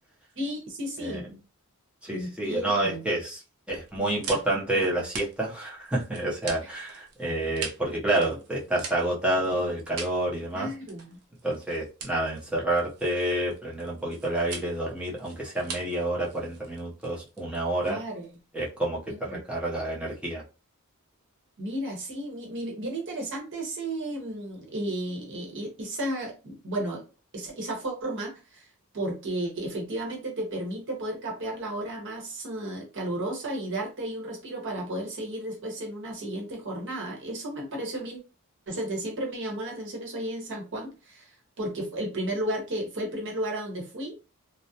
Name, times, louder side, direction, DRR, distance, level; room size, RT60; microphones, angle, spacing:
voice 1, 0.4-1.2 2.1-3.0 10.5-11.2 17.9-18.3 19.3-19.4 21.6-27.0 27.3-28.7 28.9-38.2 38.7-44.1, right 1 dB, 55° right, -1 dB, 0.9 m, -33 dB
voice 2, 1.0-1.4 2.0-3.4 3.7-10.7 11.4-18.0 18.5-20.4, right 1 dB, 5° right, -5 dB, 0.6 m, -29 dB
sound 1, 3.7-18.3, right 5 dB, 85° right, 0.6 m, -43 dB
2.3 x 2.0 x 2.7 m, 0.31 s
head